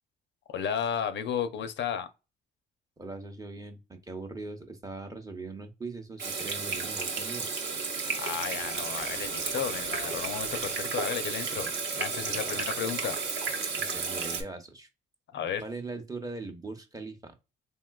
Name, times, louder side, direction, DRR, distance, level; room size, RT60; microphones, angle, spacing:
voice 1, 0.5-2.1 8.1-13.2 15.3-15.6, left 8 dB, 65° left, 0.5 m, -33 dB
voice 2, 3.0-7.5 12.3-12.7 13.7-14.9 15.6-17.3, right 3 dB, 20° right, 0.7 m, -41 dB
Water tap faucet / Sink (filling or washing), 6.2-14.4, right 5 dB, 65° right, 0.9 m, -33 dB
sound 1, 8.6-11.3, right 4 dB, 90° right, 1.1 m, -49 dB
3.6 x 2.5 x 2.2 m
cardioid pair, 90°, 20 cm